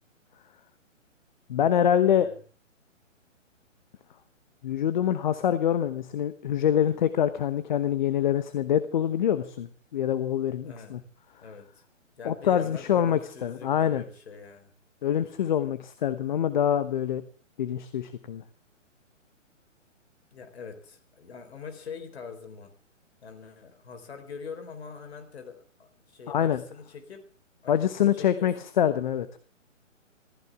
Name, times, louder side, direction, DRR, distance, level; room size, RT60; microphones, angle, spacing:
voice 1, 1.5-2.3 4.6-11.0 12.2-14.0 15.0-17.2 17.6-18.4 26.3-26.6 27.7-29.3, left 9 dB, 35° left, 12 dB, 1.1 m, -25 dB
voice 2, 2.1-2.4 10.6-11.1 11.4-11.8 12.2-14.7 20.3-22.8 23.2-27.3 27.6-28.5, left 5 dB, 55° left, 7 dB, 4.5 m, -44 dB
25.5 x 15.0 x 3.6 m, 0.39 s
figure-of-eight pair, 130°, 38 cm